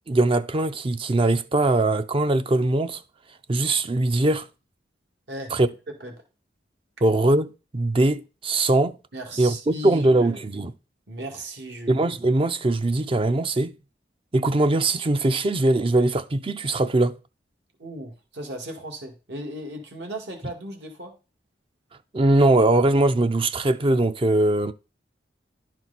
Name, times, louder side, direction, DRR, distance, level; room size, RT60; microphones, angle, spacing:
voice 1, 0.1-3.0 3.5-4.5 5.5-5.7 7.0-9.0 9.4-10.7 11.9-13.8 14.3-17.2 22.1-24.7, right 2 dB, 30° right, 0.5 m, -21 dB
voice 2, 9.1-10.4 11.1-12.0 17.8-21.1, right 1 dB, 75° right, 2.0 m, -36 dB
11.5 x 4.5 x 4.1 m
head